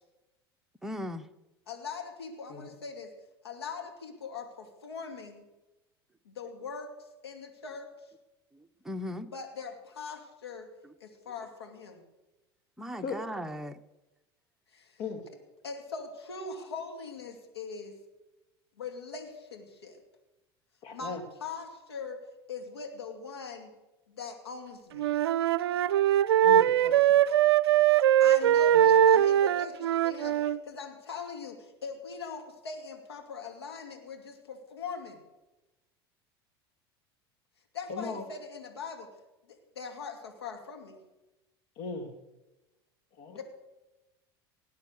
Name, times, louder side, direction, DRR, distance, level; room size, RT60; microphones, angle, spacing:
voice 1, 0.8-1.3 8.5-9.3 10.8-10.9 12.8-13.8, left 1 dB, 5° right, 5 dB, 1.0 m, -38 dB
voice 2, 1.7-3.1 3.4-5.4 6.2-6.9 7.2-7.9 9.3-10.7 11.0-12.0 14.7-15.0 15.6-18.0 18.8-20.0 20.9-22.2 22.5-23.7 24.1-25.1 28.2-35.2 37.7-39.1 39.5-41.0 43.4-43.5, left 5 dB, 85° left, 4 dB, 2.4 m, -41 dB
voice 3, 20.8-21.2 26.4-26.9 28.7-28.8 37.9-38.2 41.8-42.1 43.2-43.4, left 4 dB, 55° left, 6 dB, 2.9 m, -37 dB
Wind instrument woodwind instrument, 24.9-30.6, right 11 dB, 75° right, 0.4 m, -22 dB
18.5 x 9.6 x 6.6 m, 1.0 s
hypercardioid pair, 75°, 13 cm